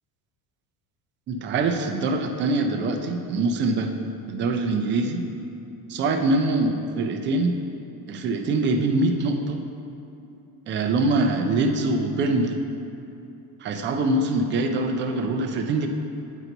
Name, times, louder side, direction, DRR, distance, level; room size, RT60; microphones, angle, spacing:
voice 1, 1.3-3.9 4.3-5.2 5.9-7.5 8.1-9.6 10.7-12.6 13.6-15.9, right 2 dB, 30° right, 5 dB, 0.4 m, -24 dB
9.0 x 4.5 x 3.9 m, 2.7 s
cardioid pair, 150°, 43 cm